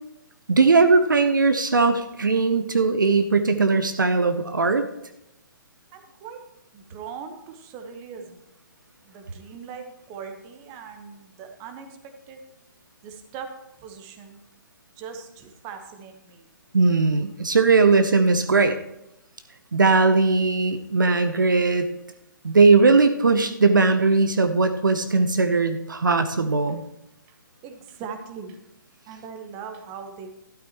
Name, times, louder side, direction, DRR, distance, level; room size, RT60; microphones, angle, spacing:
voice 1, 0.5-4.8 16.7-18.8 19.7-21.9 22.4-26.8, right 4 dB, 70° right, 9 dB, 0.8 m, -19 dB
voice 2, 5.9-6.4 6.7-8.4 9.1-12.4 13.0-13.5 13.8-14.4 15.0-16.5 27.6-28.6 29.1-30.3, right 6 dB, 25° right, 5 dB, 1.2 m, -40 dB
12.5 x 12.0 x 3.0 m, 0.87 s
figure-of-eight pair, 130°, 11 cm